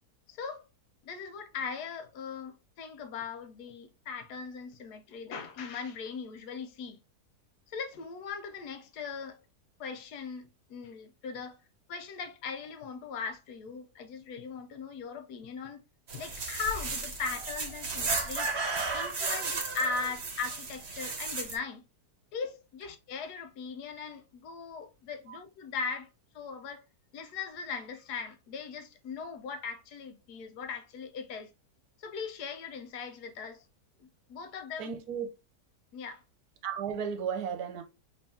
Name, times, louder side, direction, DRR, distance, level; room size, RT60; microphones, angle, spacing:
voice 1, 0.3-0.6 1.0-7.0 7.7-9.4 9.8-11.6 11.9-15.8 16.1-18.5 18.9-21.8 22.3-26.1 26.3-26.8 27.1-31.5 32.0-33.6 34.0-34.9 35.9-36.2, left 5 dB, 80° left, 1.3 m, -39 dB
sound 1, 16.1-21.6, right 3 dB, 45° right, 1.2 m, -34 dB
voice 2, 34.8-35.3 36.6-37.8, right 7 dB, 75° right, 1.2 m, -34 dB
5.5 x 3.3 x 2.7 m
omnidirectional pair, 1.7 m